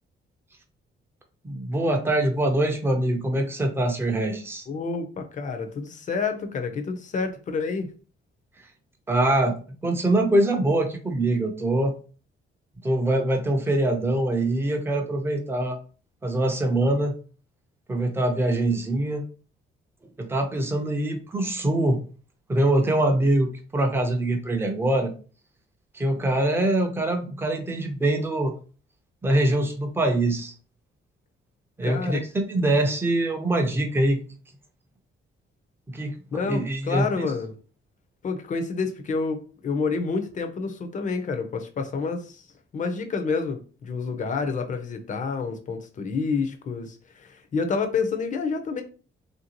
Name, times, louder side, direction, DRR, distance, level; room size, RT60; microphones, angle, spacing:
voice 1, 1.4-4.6 9.1-9.5 9.8-11.9 12.8-15.8 16.2-17.1 17.9-19.2 20.2-22.0 22.5-25.1 25.9-28.5 29.2-30.5 31.8-34.2 35.9-36.2 36.4-37.3, right 1 dB, 10° right, 0.5 m, -23 dB
voice 2, 4.7-7.9 31.8-32.2 36.3-37.5 38.2-42.5 42.7-48.8, left 4 dB, 40° left, 0.5 m, -28 dB
3.2 x 2.6 x 2.8 m
wide cardioid pair, 160°, 21 cm